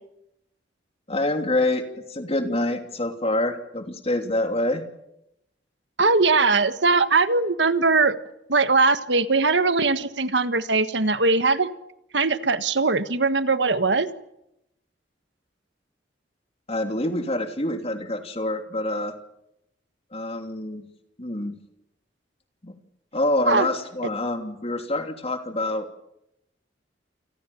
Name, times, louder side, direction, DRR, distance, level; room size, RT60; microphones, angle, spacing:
voice 1, 1.1-1.8 2.1-4.8 16.7-19.1 20.1-20.8 21.2-21.5 22.6-22.7 23.1-25.9, left 1 dB, 35° left, 6 dB, 2.9 m, -26 dB
voice 2, 6.0-8.1 8.5-11.7 12.1-14.1 23.5-23.7, right 3 dB, 80° right, 11 dB, 1.5 m, -20 dB
28.5 x 25.0 x 7.1 m, 0.84 s
head